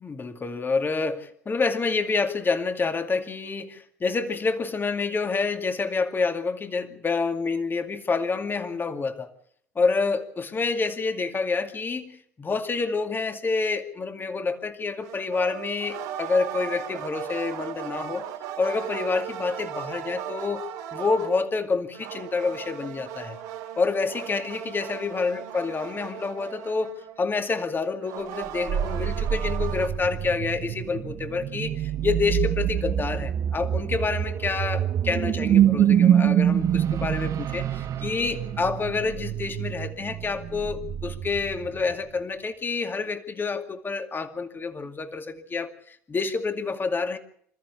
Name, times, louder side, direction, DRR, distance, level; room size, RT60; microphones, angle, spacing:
voice 1, 0.0-9.3 9.8-18.2 18.6-20.6 20.9-23.4 23.8-47.2, left 4 dB, 25° left, 6 dB, 2.4 m, -28 dB
sound 1, 15.0-21.5 21.9-27.3 28.0-29.9, right 10 dB, 70° right, 3.2 m, -37 dB
sound 2, 28.4-41.9, right 10 dB, 45° right, 1.2 m, -25 dB
27.0 x 14.0 x 7.1 m, 0.65 s
hypercardioid pair, 70°, 8 cm